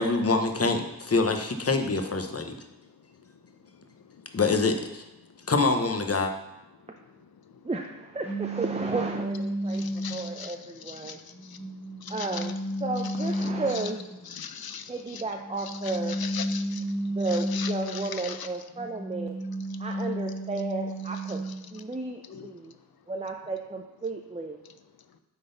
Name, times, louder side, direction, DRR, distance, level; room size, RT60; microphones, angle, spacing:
voice 1, 0.0-2.5 4.3-5.0 5.5-6.3, left 3 dB, 35° left, 5 dB, 0.8 m, -25 dB
voice 2, 2.4-4.4 5.2-5.5 6.8-7.7 9.6-12.5 13.0-13.9 14.2-18.9 19.6-20.1 21.0-21.8 22.2-22.8 24.6-25.2, left 7 dB, 65° left, 10 dB, 0.6 m, -43 dB
voice 3, 7.6-9.8 10.1-11.2 12.1-14.0 14.9-16.2 17.1-19.3 19.8-21.4 21.7-22.7 23.1-24.6, right 3 dB, 15° right, 3 dB, 0.5 m, -33 dB
sound 1, 8.2-10.4 11.1-14.2 15.3-18.3 18.7-21.7, right 1 dB, 5° left, 2.1 m, -32 dB
9.2 x 3.9 x 3.9 m, 0.97 s
wide cardioid pair, 45°, 39 cm